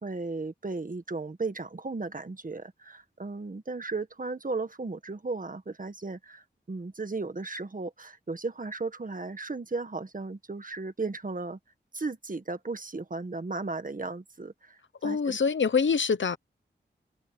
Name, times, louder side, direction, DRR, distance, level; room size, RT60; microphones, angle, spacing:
voice 1, 0.0-11.6 11.9-14.8 15.0-15.4, right 3 dB, 45° right, 1.7 m, -35 dB
voice 2, 15.0-16.4, left 5 dB, 75° left, 1.1 m, -25 dB
wide cardioid pair, 65°, 20 cm